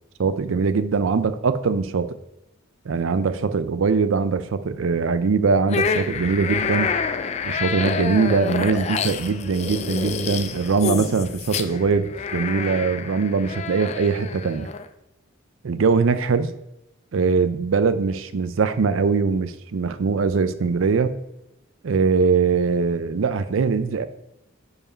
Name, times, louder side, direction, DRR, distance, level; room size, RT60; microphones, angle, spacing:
voice 1, 0.2-2.2 2.9-6.9 7.4-14.7 15.6-16.5 17.1-21.1 21.8-24.1, right 5 dB, 70° right, 0.4 m, -22 dB
sound 1, 5.7-14.9, left 5 dB, 30° left, 0.3 m, -28 dB
5.0 x 4.9 x 5.5 m
head